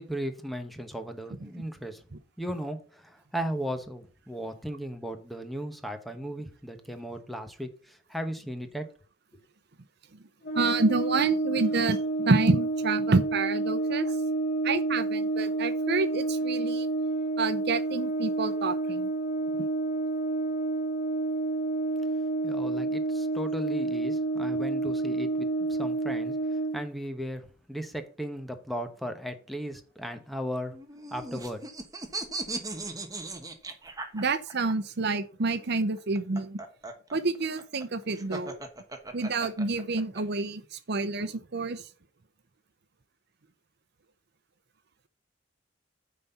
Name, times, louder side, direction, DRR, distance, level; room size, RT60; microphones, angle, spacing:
voice 1, 0.0-2.0 2.4-8.9 22.4-26.3 26.7-30.7 31.1-31.6, equal, ahead, 1.1 m, -36 dB
Brass instrument, 10.4-26.8, right 2 dB, 60° left, 1.8 m, -29 dB
voice 2, 10.5-14.1 14.6-16.9 17.4-19.1 19.6-19.7 34.1-36.6 37.1-38.6 39.1-41.8, right 3 dB, 60° right, 0.8 m, -28 dB
sound 1, 30.7-34.7 36.0-40.2, right 2 dB, 20° right, 1.2 m, -38 dB
9.4 x 4.2 x 6.9 m
head